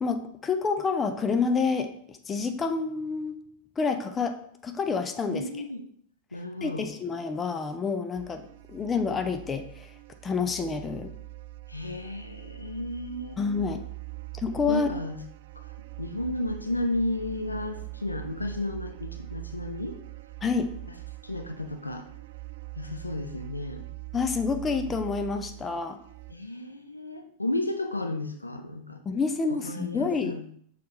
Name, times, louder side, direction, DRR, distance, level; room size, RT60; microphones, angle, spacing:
voice 1, 0.0-3.4 3.8-4.4 4.6-5.4 6.6-8.4 8.7-9.9 10.2-11.1 13.4-13.8 14.4-14.9 20.4-20.7 24.1-26.0 29.1-30.4, left 5 dB, 20° left, 7 dB, 0.7 m, -28 dB
voice 2, 5.3-5.8 6.3-6.9 11.7-13.4 14.7-15.2 15.5-15.7 16.0-20.0 21.2-22.1 22.8-23.9 26.3-29.0 29.5-30.4, left 1 dB, 85° left, 6 dB, 0.6 m, -33 dB
sound 1, 8.2-26.3, right 20 dB, 55° right, 0.3 m, -42 dB
6.4 x 4.1 x 4.2 m, 0.63 s
figure-of-eight pair, 90°, 0 cm